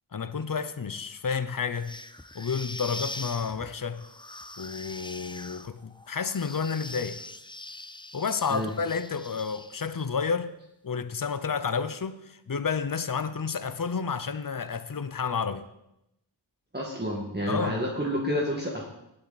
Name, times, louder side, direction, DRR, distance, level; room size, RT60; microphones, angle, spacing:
voice 1, 0.1-1.9 2.3-4.0 4.6-7.2 8.1-10.5 10.8-15.7 17.5-17.8, left 5 dB, 50° left, 12 dB, 0.9 m, -30 dB
sound 1, 1.8-10.1, left 2 dB, 10° left, 0.6 m, -42 dB
voice 2, 16.7-18.9, equal, 20° right, -3 dB, 2.0 m, -29 dB
19.0 x 8.4 x 4.2 m, 0.84 s
wide cardioid pair, 60°, 44 cm